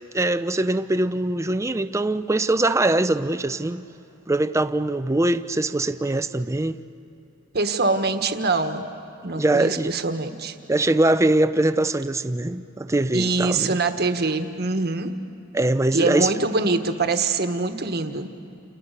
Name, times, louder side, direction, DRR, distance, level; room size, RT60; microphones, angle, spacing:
voice 1, 0.1-3.8 4.3-6.8 9.3-9.9 10.7-13.8 15.5-16.3, right 2 dB, 15° right, 0.6 m, -22 dB
voice 2, 7.5-8.8 9.2-10.5 13.1-15.1 15.9-18.3, right 3 dB, 50° right, 1.4 m, -24 dB
29.5 x 29.0 x 6.8 m
head